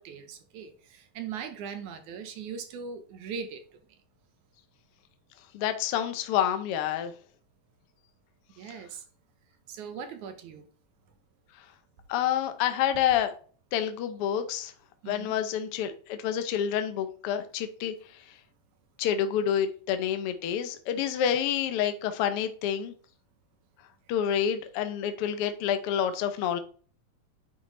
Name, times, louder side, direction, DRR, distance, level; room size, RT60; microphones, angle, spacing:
voice 1, 0.0-4.0 8.6-9.0 9.7-10.7 15.0-15.3, right 6 dB, 75° right, 2.5 m, -40 dB
voice 2, 5.5-7.1 12.1-13.3 13.7-14.7 15.1-17.9 19.0-22.9 24.1-26.6, left 9 dB, 65° left, 1.5 m, -28 dB
9.6 x 5.6 x 3.3 m
omnidirectional pair, 3.5 m